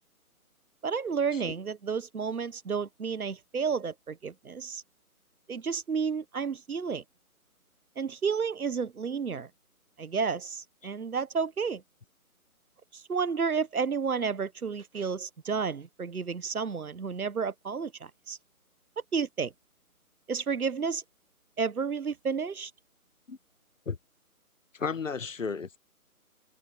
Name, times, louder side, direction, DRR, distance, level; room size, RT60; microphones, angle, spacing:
voice 1, 0.8-4.8 5.5-7.0 8.0-9.5 10.0-11.8 12.9-18.4 19.1-19.5 20.3-21.0 21.6-22.7, right 5 dB, 75° right, 1.3 m, -31 dB
voice 2, 24.7-25.8, left 5 dB, 60° left, 1.6 m, -33 dB
figure-of-eight pair, 170°, 44 cm